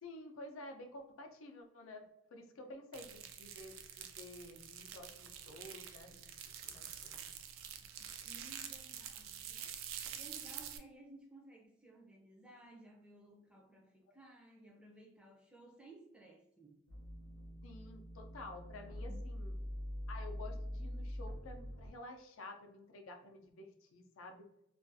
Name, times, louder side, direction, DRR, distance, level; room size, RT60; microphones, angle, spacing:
voice 1, 0.0-2.0 2.3-6.4 6.6-7.4 17.6-19.5 20.1-24.5, left 2 dB, 90° left, 3 dB, 0.4 m, -51 dB
sound 1, 2.9-10.8, right 9 dB, 85° right, 0.3 m, -47 dB
voice 2, 8.0-16.8 19.1-19.2, right 2 dB, 5° right, 0 dB, 0.4 m, -58 dB
sound 2, 16.9-21.9, equal, 55° right, 0.8 m, -44 dB
2.4 x 2.3 x 2.5 m, 0.83 s
head